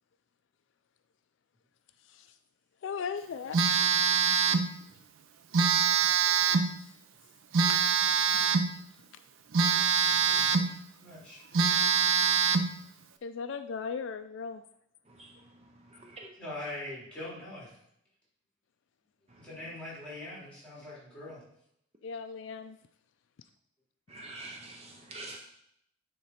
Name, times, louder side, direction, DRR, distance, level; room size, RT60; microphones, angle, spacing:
voice 1, 2.8-3.6 6.2-6.3 13.2-14.6 22.0-22.8, left 5 dB, 60° left, 9 dB, 0.3 m, -37 dB
Telephone, 3.5-4.7 5.5-6.7 7.5-8.7 9.5-10.7 11.2-11.3 11.5-12.7, right 6 dB, 75° right, 0.5 m, -24 dB
voice 2, 10.2-11.6 16.2-17.7 19.4-21.4, left 1 dB, 5° left, -7 dB, 3.2 m, -43 dB
voice 3, 15.1-16.3 19.3-19.5 24.1-25.4, right 2 dB, 30° right, 1 dB, 0.6 m, -47 dB
9.4 x 3.8 x 4.3 m, 0.74 s
head